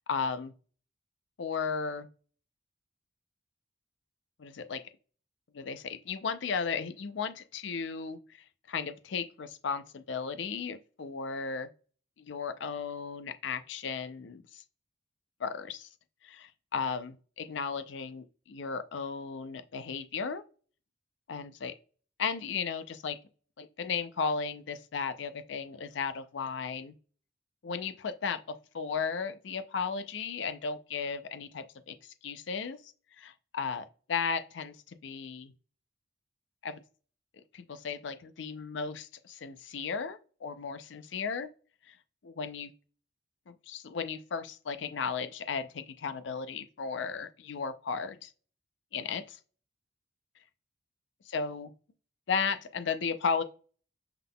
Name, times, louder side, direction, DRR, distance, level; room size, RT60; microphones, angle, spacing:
voice 1, 0.1-0.5 1.4-2.1 4.4-4.8 5.5-11.7 12.2-14.6 15.4-15.9 16.2-20.4 21.3-21.7 22.2-23.2 23.6-26.9 27.6-35.5 36.6-36.8 37.5-41.5 41.9-42.0 42.2-42.7 43.5-48.3 48.9-49.4 51.3-51.7 52.3-53.4, left 5 dB, 70° left, 0.5 m, -35 dB
5.7 x 3.6 x 2.2 m
head